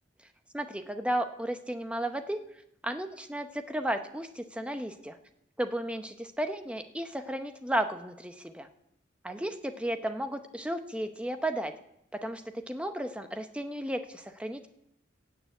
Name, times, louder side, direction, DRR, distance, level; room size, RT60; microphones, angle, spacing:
voice 1, 0.5-2.4 2.8-5.2 5.6-8.7 9.2-11.7 12.1-14.7, right 1 dB, 5° right, 7 dB, 0.8 m, -34 dB
17.0 x 6.9 x 8.1 m, 0.80 s
head